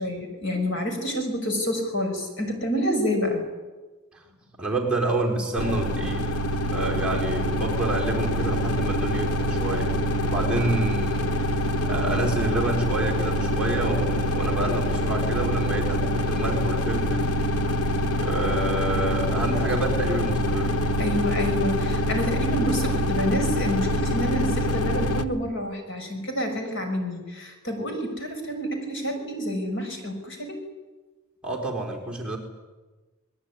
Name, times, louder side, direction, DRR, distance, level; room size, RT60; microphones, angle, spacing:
voice 1, 0.0-3.4 21.0-30.6, equal, 55° left, 4 dB, 6.4 m, -28 dB
voice 2, 4.1-6.3 6.7-10.0 10.3-11.3 11.8-17.3 18.2-20.7 31.4-32.4, right 2 dB, 5° right, -2 dB, 4.5 m, -28 dB
sound 1, 5.6-25.2, equal, 85° left, 1.4 m, -25 dB
24.5 x 21.5 x 9.9 m, 1.2 s
head